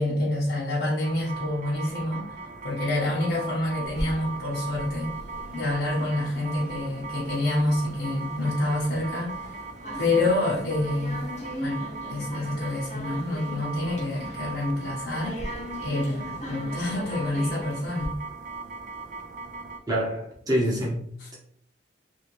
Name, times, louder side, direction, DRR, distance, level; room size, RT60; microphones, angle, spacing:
voice 1, 0.0-2.3 2.6-5.1 5.5-9.5 10.0-11.2 11.6-15.5 15.8-18.1 21.2-21.3, left 2 dB, 85° left, -7 dB, 0.9 m, -27 dB
sound 1, 1.0-19.8, right 4 dB, 40° right, 0.3 m, -39 dB
sound 2, 3.8-18.1, equal, 40° left, 0.8 m, -40 dB
voice 2, 19.9-21.1, equal, 20° right, -4 dB, 0.9 m, -26 dB
3.0 x 2.8 x 2.9 m, 0.65 s
head